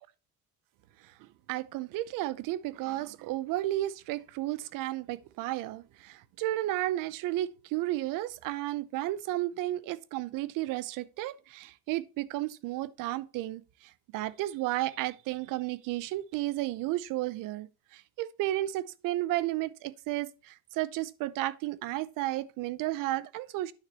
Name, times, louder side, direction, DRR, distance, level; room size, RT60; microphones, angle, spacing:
voice 1, 1.0-23.7, right 15 dB, 65° right, 0.6 m, -33 dB
9.7 x 6.1 x 2.9 m
cardioid pair, 175°, 36 cm